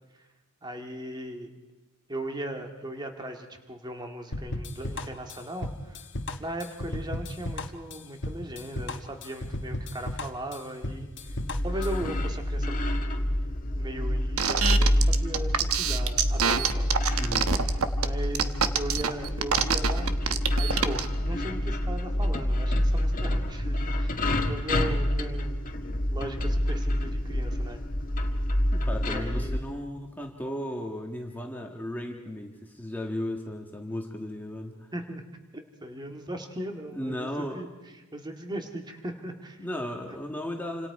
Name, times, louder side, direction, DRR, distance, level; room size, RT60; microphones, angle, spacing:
voice 1, 0.6-1.5 2.1-6.1 6.4-11.4 11.6-12.9 13.8-17.2 17.5-17.7 18.0-20.2 20.6-25.7 26.1-27.8 29.1-29.7 34.9-35.3 35.8-37.7 38.1-39.6, right 1 dB, 20° right, 4 dB, 2.0 m, -38 dB
sound 1, 4.3-12.2, left 1 dB, 55° left, 1.3 m, -35 dB
sound 2, 11.3-29.6, left 1 dB, 40° left, 1.8 m, -27 dB
sound 3, 14.4-21.1, right 7 dB, 70° right, 1.2 m, -25 dB
voice 2, 28.7-34.9 36.9-37.6 39.6-40.9, left 1 dB, 10° left, 1 dB, 1.6 m, -35 dB
28.0 x 26.5 x 4.9 m, 1.1 s
head